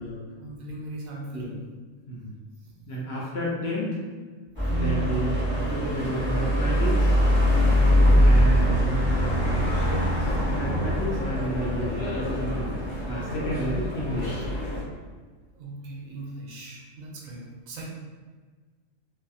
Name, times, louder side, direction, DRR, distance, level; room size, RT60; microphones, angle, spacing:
voice 1, 0.4-1.6 4.6-5.2 8.0-8.5 15.5-17.9, right 3 dB, 85° right, -2 dB, 1.1 m, -37 dB
voice 2, 2.9-4.0 4.7-7.2 8.2-9.7 10.2-12.8 13.1-14.5, right 1 dB, 65° left, -5 dB, 0.8 m, -31 dB
sound 1, 4.5-14.8, equal, 10° right, 0.8 m, -23 dB
2.7 x 2.5 x 2.3 m, 1.4 s
omnidirectional pair, 1.4 m